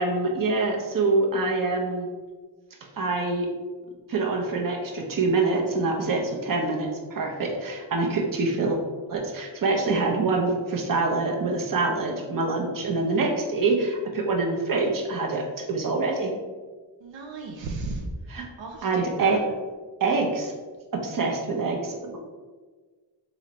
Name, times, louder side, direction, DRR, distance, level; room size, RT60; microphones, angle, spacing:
voice 1, 0.0-2.1 3.0-3.5 4.1-8.8 9.1-16.3 18.3-18.4 18.8-19.4 20.0-20.5 20.9-22.2, right 3 dB, 50° right, 1 dB, 0.8 m, -25 dB
voice 2, 17.0-18.1 18.6-19.4, right 3 dB, 85° right, 2 dB, 0.6 m, -35 dB
3.9 x 3.1 x 3.0 m, 1.4 s
cardioid pair, 75°, 44 cm